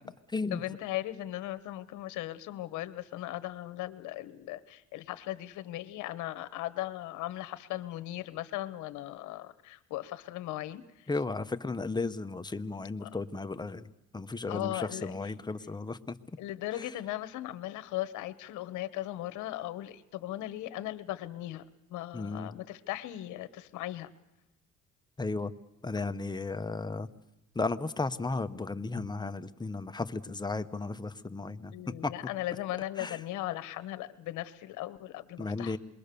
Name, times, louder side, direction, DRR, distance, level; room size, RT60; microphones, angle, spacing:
voice 1, 0.5-10.8 13.0-13.2 14.5-15.1 16.4-21.6 21.9-24.1 29.0-29.1 31.7-35.8, left 15 dB, 85° left, 14 dB, 1.1 m, -38 dB
voice 2, 11.1-13.9 14.1-16.1 16.7-16.9 22.1-22.5 25.2-25.5 25.8-27.1 27.5-32.1 33.0-33.2 35.4-35.8, left 3 dB, 15° left, 10 dB, 1.0 m, -34 dB
27.0 x 22.0 x 6.9 m, 0.92 s
cardioid pair, 95°, 29 cm